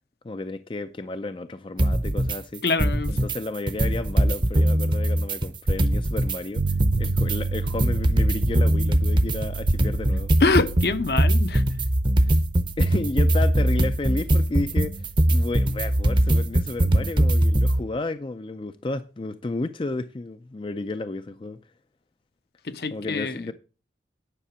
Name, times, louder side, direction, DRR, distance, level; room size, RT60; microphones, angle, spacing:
voice 1, 0.2-2.6 3.1-10.4 12.2-12.4 12.8-21.6 22.9-23.5, left 2 dB, 30° left, 0.4 m, -32 dB
sound 1, 1.8-2.4 2.7-3.4 3.7-6.4 6.7-17.8, right 1 dB, 25° right, 0.7 m, -21 dB
voice 2, 2.6-3.2 10.4-11.6 22.7-23.4, left 3 dB, 60° left, 0.8 m, -24 dB
sound 2, 6.6-16.7, right 3 dB, 70° right, 0.5 m, -33 dB
9.9 x 5.9 x 5.9 m
head